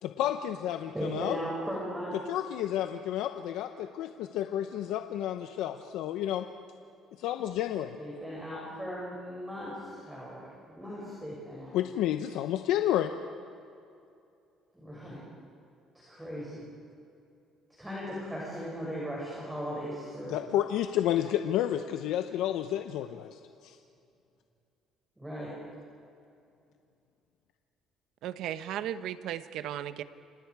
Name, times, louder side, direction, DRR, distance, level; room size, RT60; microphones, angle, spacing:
voice 1, 0.0-1.4 2.3-6.4 7.2-8.0 11.7-13.1 20.3-23.8, left 12 dB, 80° left, 7 dB, 0.9 m, -31 dB
voice 2, 0.9-2.2 8.0-10.4 10.7-11.8 14.7-15.2 16.1-16.6 17.8-20.4 25.2-25.5, equal, 5° right, -5 dB, 6.5 m, -37 dB
voice 3, 28.2-30.0, right 11 dB, 70° right, 12 dB, 1.0 m, -35 dB
29.5 x 26.0 x 4.9 m, 2.5 s
cardioid pair, 130°, 0 cm